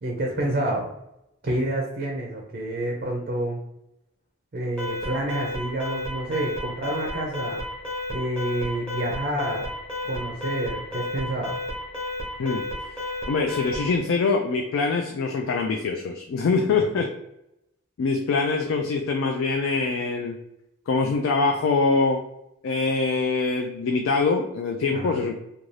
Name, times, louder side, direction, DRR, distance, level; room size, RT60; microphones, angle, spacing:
voice 1, 0.0-0.9 1.4-3.6 4.5-7.6 8.1-9.7 10.0-11.5 16.7-16.9 24.9-25.3, right 1 dB, 45° right, -1 dB, 0.4 m, -28 dB
Alarm, 4.8-14.0, left 1 dB, 5° left, 0.6 m, -32 dB
voice 2, 12.4-13.0 13.3-17.1 18.0-20.4 20.9-22.2 22.6-25.4, left 4 dB, 70° left, 3 dB, 0.3 m, -24 dB
2.5 x 2.3 x 3.1 m, 0.84 s
head